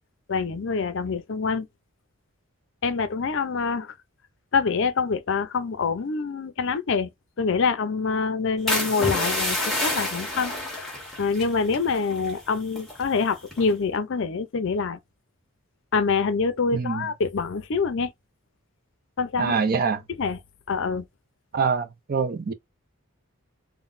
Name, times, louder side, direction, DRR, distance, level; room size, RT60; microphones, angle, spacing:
voice 1, 0.3-1.7 2.8-3.9 4.5-7.1 7.4-10.5 10.8-10.9 11.2-15.0 15.9-18.1 19.2-19.5 20.2-20.4 20.7-21.1, left 5 dB, 55° left, 0.5 m, -25 dB
sound 1, 8.7-12.4 12.7-13.1 13.5-13.8, left 1 dB, ahead, 1.5 m, -29 dB
voice 2, 16.7-17.1 19.4-20.0 21.5-22.5, right 5 dB, 40° right, 0.4 m, -25 dB
3.8 x 2.1 x 2.5 m
head